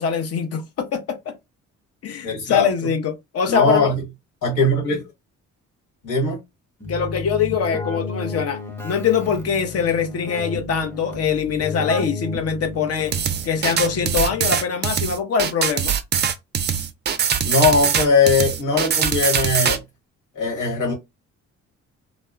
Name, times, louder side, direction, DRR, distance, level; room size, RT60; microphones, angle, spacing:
voice 1, 0.0-1.4 2.0-3.9 6.9-13.1 13.4-16.0, left 6 dB, 55° left, 0.6 m, -23 dB
voice 2, 2.2-2.7 3.5-4.0 4.4-5.1 6.0-6.4 17.4-19.8 20.3-20.9, left 3 dB, 90° left, 1.6 m, -20 dB
Keyboard (musical), 6.8-14.7, left 3 dB, 5° left, 0.7 m, -32 dB
sound 1, 13.1-19.8, right 8 dB, 35° right, 0.4 m, -22 dB
2.9 x 2.1 x 2.3 m
cardioid pair, 90°, 30 cm